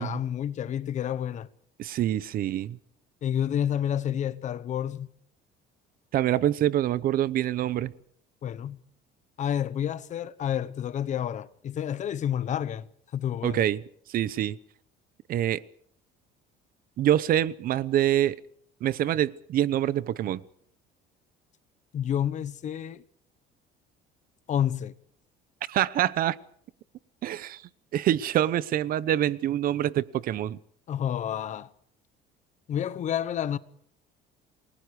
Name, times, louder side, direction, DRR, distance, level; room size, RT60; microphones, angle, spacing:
voice 1, 0.0-1.5 3.2-5.1 8.4-8.8 9.4-12.8 13.1-13.6 21.9-23.0 24.5-24.9 30.9-31.7 32.7-33.6, left 9 dB, 40° left, 0.9 m, -29 dB
voice 2, 1.8-2.8 6.1-7.9 13.4-13.8 14.1-14.6 15.3-15.6 17.0-18.4 18.8-20.4 25.7-26.4 27.2-27.6 27.9-30.6, right 12 dB, 50° right, 0.8 m, -25 dB
29.0 x 20.5 x 4.9 m
cardioid pair, 155°, 19 cm